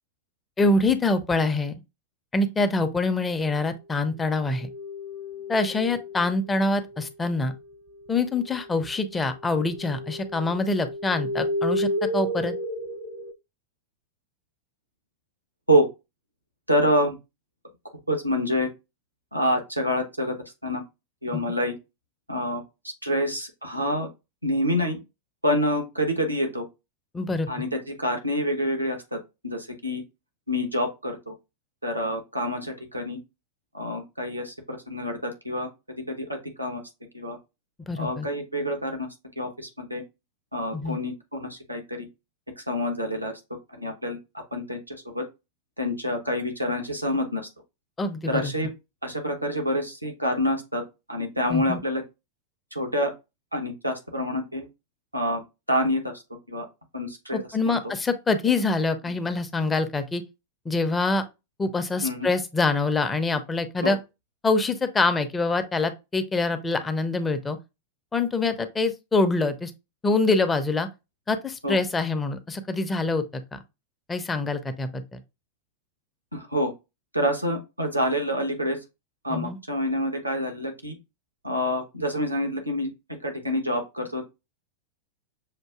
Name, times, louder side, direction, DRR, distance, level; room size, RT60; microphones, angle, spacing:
voice 1, 0.6-1.7 2.3-4.7 5.5-7.5 8.1-11.9 12.1-12.5 27.1-27.5 37.9-38.3 40.7-41.0 48.0-48.5 51.5-51.8 57.3-60.2 60.7-61.2 61.6-64.0 64.4-67.6 68.1-69.7 70.0-70.9 71.3-73.6 74.1-75.0 79.3-79.6, left 3 dB, 15° left, 0.6 m, -25 dB
sound 1, 4.5-7.6 8.0-13.3, equal, 30° right, 0.6 m, -33 dB
voice 2, 16.7-17.1 18.1-18.7 19.3-20.3 20.6-20.8 21.2-21.8 22.3-22.6 23.0-24.1 24.4-25.0 25.4-26.6 27.5-29.2 29.4-30.0 30.5-31.3 31.8-33.2 33.7-35.7 35.9-36.8 37.1-37.4 38.0-39.1 39.4-40.0 40.5-42.1 42.6-43.3 43.8-45.2 45.8-47.5 48.3-48.7 49.0-50.8 51.1-52.0 52.7-53.1 53.5-54.7 55.1-55.4 55.7-56.1 56.5-56.7 56.9-57.4 57.7-57.8 62.0-62.3 63.8-64.0 71.6-71.8 76.3-76.7 77.1-78.8 79.2-81.0 81.4-82.9 83.2-84.2, equal, 90° right, 1.0 m, -27 dB
6.5 x 2.6 x 2.3 m
figure-of-eight pair, 90°, 0 cm